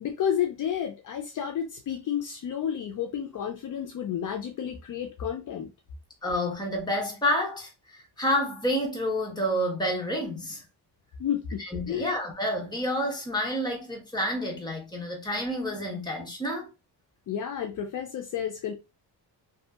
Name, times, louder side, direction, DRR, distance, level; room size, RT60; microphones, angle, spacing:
voice 1, 0.0-5.7 11.2-12.1 17.3-18.7, left 9 dB, 50° left, 0.5 m, -31 dB
voice 2, 6.2-10.6 11.6-16.7, equal, 10° left, 0.9 m, -29 dB
2.7 x 2.7 x 2.3 m
cardioid pair, 130°, 41 cm